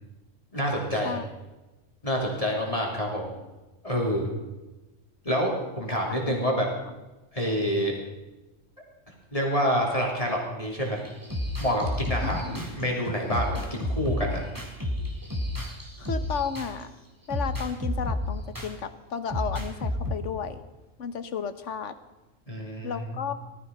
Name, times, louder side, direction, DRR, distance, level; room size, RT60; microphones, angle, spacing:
voice 1, 0.5-1.2 2.0-3.3 3.8-4.3 5.2-6.7 7.3-7.9 9.3-11.0 11.6-14.4 22.5-23.0, equal, 25° left, -1 dB, 3.3 m, -27 dB
voice 2, 6.3-6.7 12.2-12.6 16.0-16.9 17.3-20.6 21.0-21.9 22.8-23.3, left 6 dB, 65° left, 11 dB, 1.4 m, -33 dB
sound 1, 10.8-16.8 17.3-18.7 19.3-20.2, left 1 dB, 15° right, 2.5 m, -31 dB
18.5 x 14.0 x 5.4 m, 1.1 s
omnidirectional pair, 1.4 m